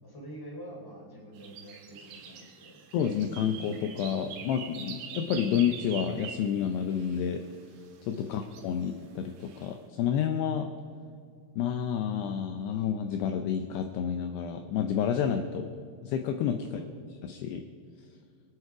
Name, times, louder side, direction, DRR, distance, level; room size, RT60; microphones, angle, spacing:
voice 1, 0.0-2.8 8.2-8.3 16.6-16.9, right 1 dB, 5° left, -2 dB, 2.6 m, -46 dB
sound 1, 1.4-7.3 8.1-8.9 9.4-9.7, right 6 dB, 75° right, 3.8 m, -44 dB
voice 2, 2.9-7.4 8.1-10.7 11.6-15.7 16.0-16.8 17.3-17.6, left 8 dB, 80° left, 7 dB, 2.5 m, -29 dB
23.0 x 9.2 x 4.9 m, 2.4 s
omnidirectional pair, 5.3 m